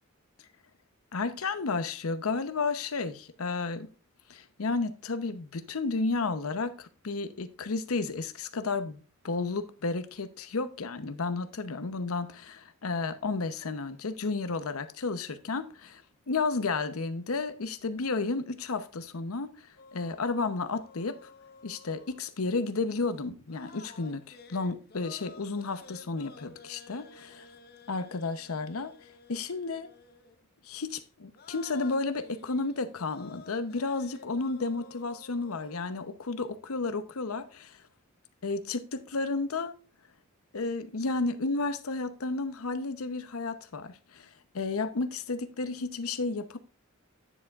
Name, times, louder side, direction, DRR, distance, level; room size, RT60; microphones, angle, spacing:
voice 1, 1.1-3.9 4.3-16.0 16.3-19.5 19.9-21.2 21.6-27.5 27.9-28.9 29.3-29.9 30.6-37.8 38.4-39.8 40.5-44.3 44.5-46.6, left 3 dB, 90° left, 0.8 m, -32 dB
sound 1, 19.8-22.4 22.8-23.0 23.4-30.5 31.0-31.1 31.3-35.9, left 4 dB, 45° left, 0.9 m, -53 dB
9.9 x 7.2 x 2.4 m
head